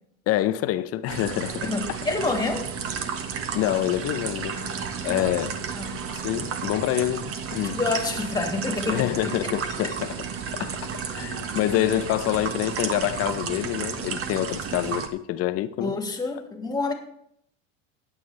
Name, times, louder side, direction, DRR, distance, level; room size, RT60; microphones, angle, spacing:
voice 1, 0.3-1.7 3.5-4.6 5.0-5.6 6.2-7.8 8.9-10.2 10.5-10.8 11.1-15.9, left 13 dB, 40° left, 0.7 m, -26 dB
sound 1, 1.1-15.1, right 6 dB, 35° right, 1.4 m, -32 dB
voice 2, 1.6-2.7 4.5-5.4 5.7-6.0 7.6-9.0 9.8-10.0 15.8-16.9, left 3 dB, 10° left, 2.2 m, -28 dB
15.5 x 9.5 x 3.4 m
supercardioid pair, 115°, 37 cm